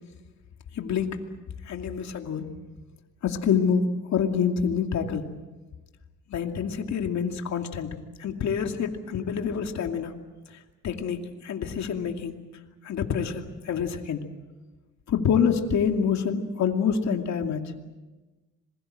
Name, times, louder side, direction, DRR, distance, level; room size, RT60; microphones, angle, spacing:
voice 1, 0.7-1.2 1.7-2.4 3.2-5.2 6.3-10.1 10.8-12.4 12.8-14.2 15.1-17.6, left 7 dB, 65° left, 4 dB, 2.5 m, -27 dB
26.5 x 22.0 x 7.6 m, 1.2 s
cardioid pair, 90°, 30 cm